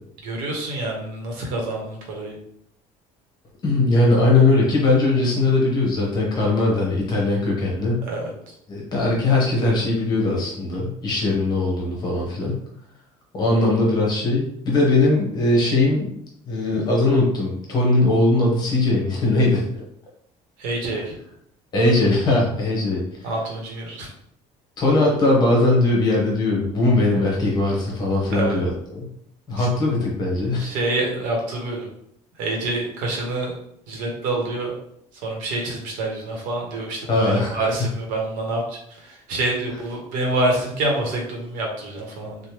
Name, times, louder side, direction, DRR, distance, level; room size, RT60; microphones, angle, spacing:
voice 1, 0.2-2.4 8.1-8.5 20.6-21.1 23.2-24.1 28.3-28.6 29.6-29.7 30.6-31.9 32.4-33.5 33.9-34.7 35.1-42.5, right 2 dB, 75° right, 0 dB, 0.9 m, -27 dB
voice 2, 3.6-8.0 8.7-12.6 13.3-16.1 16.4-19.6 21.7-23.0 24.8-29.0 29.5-30.7 37.1-37.6, left 2 dB, 30° left, -3 dB, 0.9 m, -20 dB
3.3 x 2.1 x 2.9 m, 0.72 s
cardioid pair, 180°, 14 cm